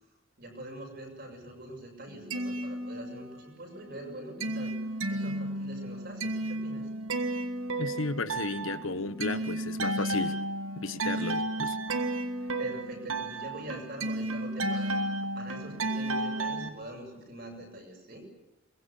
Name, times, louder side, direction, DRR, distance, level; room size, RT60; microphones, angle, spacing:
voice 1, 0.4-4.8 5.1-6.9 11.0-11.5 12.6-15.0 15.3-18.3, right 1 dB, 50° right, 2 dB, 7.6 m, -44 dB
sound 1, 2.1-3.5 3.9-16.7, right 2 dB, 85° right, 1.7 m, -33 dB
voice 2, 7.8-10.3 10.8-11.8, left 3 dB, 80° left, 12 dB, 1.4 m, -34 dB
23.5 x 22.0 x 8.5 m, 0.91 s
head